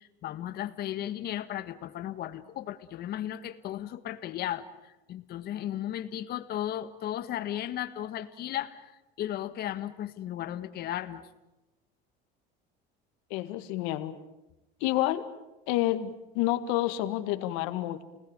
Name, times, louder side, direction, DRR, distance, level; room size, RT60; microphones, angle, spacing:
voice 1, 0.0-11.3, left 12 dB, 50° left, 10 dB, 1.6 m, -35 dB
voice 2, 13.3-14.1 14.8-15.2 15.7-18.0, left 15 dB, 85° left, 10 dB, 2.0 m, -29 dB
29.5 x 20.0 x 9.0 m, 0.99 s
cardioid pair, 135°, 20 cm